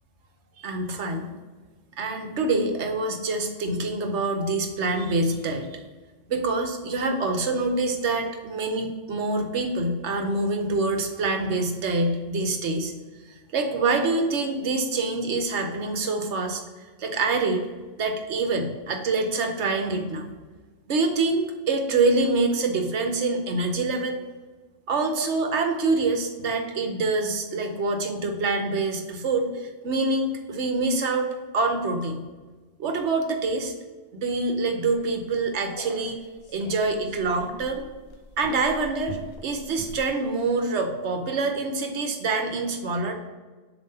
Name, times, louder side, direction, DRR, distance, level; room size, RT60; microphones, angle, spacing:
voice 1, 0.6-1.3 2.0-5.8 6.3-12.9 13.5-16.6 17.0-17.6 18.0-20.3 20.9-24.2 24.9-31.3 31.5-32.2 32.8-33.7 34.1-36.2 36.5-37.8 38.4-43.1, right 3 dB, 70° right, 4 dB, 1.1 m, -25 dB
sound 1, 34.8-40.1, left 1 dB, 60° left, 1.0 m, -43 dB
7.0 x 2.7 x 5.4 m, 1.3 s
omnidirectional pair, 1.3 m